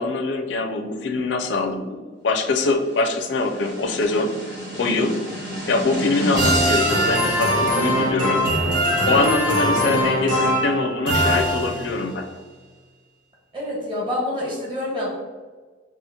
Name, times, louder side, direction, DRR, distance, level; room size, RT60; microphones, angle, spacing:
voice 1, 0.0-4.3 4.8-5.2 5.7-8.5 9.1-12.3, left 3 dB, 80° left, 5 dB, 0.4 m, -23 dB
sound 1, 3.2-12.1, equal, 75° right, 1.4 m, -22 dB
voice 2, 13.5-15.2, left 1 dB, 30° right, -4 dB, 1.2 m, -27 dB
4.9 x 2.4 x 2.8 m, 1.4 s
head